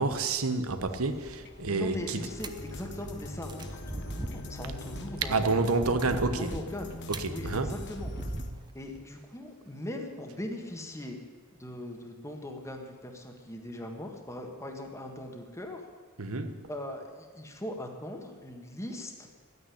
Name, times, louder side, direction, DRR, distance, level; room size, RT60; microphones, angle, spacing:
voice 1, 0.0-2.2 5.3-6.5 7.1-7.7 16.2-16.7, right 3 dB, 85° right, 8 dB, 1.2 m, -29 dB
sound 1, 0.8-8.7, right 2 dB, 20° right, 0.6 m, -41 dB
sound 2, 1.4-8.5, left 2 dB, 55° left, 1.3 m, -43 dB
voice 2, 1.7-5.8 6.1-6.9 7.3-8.1 8.7-11.2 11.5-15.8 16.7-19.3, left 1 dB, 15° left, 3 dB, 1.6 m, -40 dB
13.5 x 9.4 x 9.9 m, 1.5 s
head